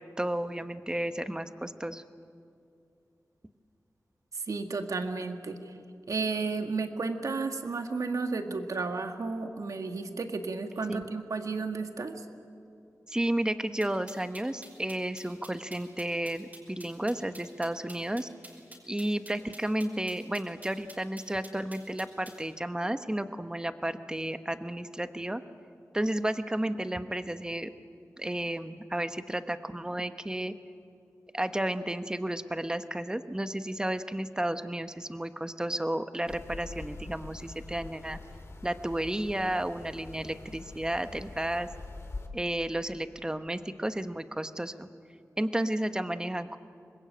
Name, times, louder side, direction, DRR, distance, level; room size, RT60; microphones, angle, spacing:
voice 1, 0.0-2.0 10.9-11.0 13.1-18.3 18.9-25.4 25.9-27.7 28.2-30.5 31.3-38.2 38.6-41.7 42.3-44.9 45.4-46.6, right 1 dB, 15° right, 10 dB, 1.1 m, -32 dB
voice 2, 4.5-5.7 6.1-12.2, right 4 dB, 70° right, 6 dB, 1.8 m, -33 dB
sound 1, 13.8-22.4, right 1 dB, 30° right, 5.4 m, -49 dB
Rural Wales light drizzle, 36.3-42.3, left 2 dB, 50° left, 2.7 m, -44 dB
25.5 x 21.5 x 8.9 m, 2.5 s
wide cardioid pair, 90°, 6 cm